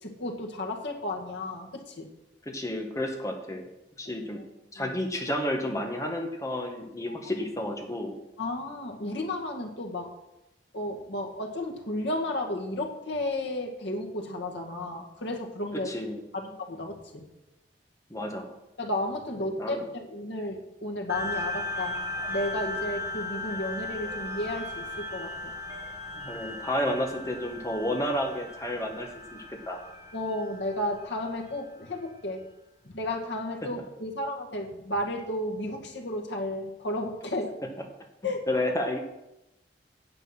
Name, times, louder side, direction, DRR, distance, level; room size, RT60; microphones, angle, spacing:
voice 1, 0.0-2.1 4.8-4.9 8.4-10.1 10.7-15.9 16.3-17.2 18.8-22.0 22.3-25.5 30.1-32.4 32.8-37.5 38.2-38.4, left 1 dB, 90° left, 1 dB, 1.9 m, -33 dB
voice 2, 2.4-3.6 4.0-4.4 4.7-8.1 15.7-16.2 18.1-18.5 19.4-19.8 26.1-29.8 38.5-39.0, left 1 dB, 20° left, 2 dB, 1.6 m, -31 dB
sound 1, 21.1-32.0, left 2 dB, 15° right, 3.1 m, -37 dB
9.9 x 8.2 x 6.0 m, 0.91 s
head